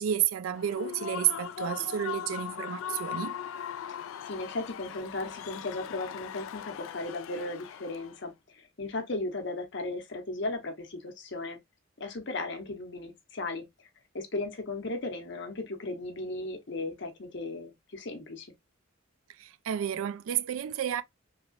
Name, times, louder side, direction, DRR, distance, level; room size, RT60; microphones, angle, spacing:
voice 1, 0.0-3.4 19.4-21.0, right 10 dB, 90° right, 0.3 m, -31 dB
Human voice / Cheering / Applause, 0.5-8.2, left 9 dB, 80° left, 0.3 m, -39 dB
voice 2, 4.2-11.6 12.0-13.6 14.1-18.5, left 2 dB, 60° left, 0.8 m, -36 dB
3.2 x 2.9 x 2.5 m
head